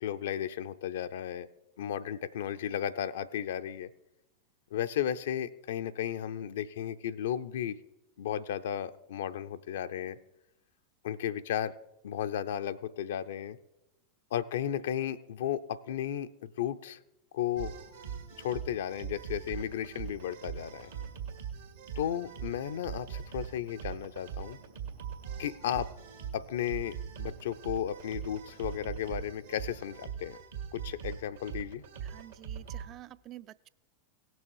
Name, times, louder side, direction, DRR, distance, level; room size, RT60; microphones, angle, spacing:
voice 1, 0.0-1.5 1.8-3.9 4.7-7.8 8.2-10.2 11.0-11.7 12.0-13.6 14.3-17.0 17.3-17.7 18.4-20.9 22.0-24.6 25.4-25.9 26.3-30.4 30.7-31.8, left 10 dB, 65° left, 11 dB, 0.5 m, -34 dB
sound 1, 17.6-32.9, right 8 dB, 75° right, 1.8 m, -41 dB
voice 2, 32.0-33.7, right 14 dB, 40° right, 18 dB, 0.3 m, -49 dB
17.5 x 6.2 x 4.7 m, 0.93 s
figure-of-eight pair, 90°, 0 cm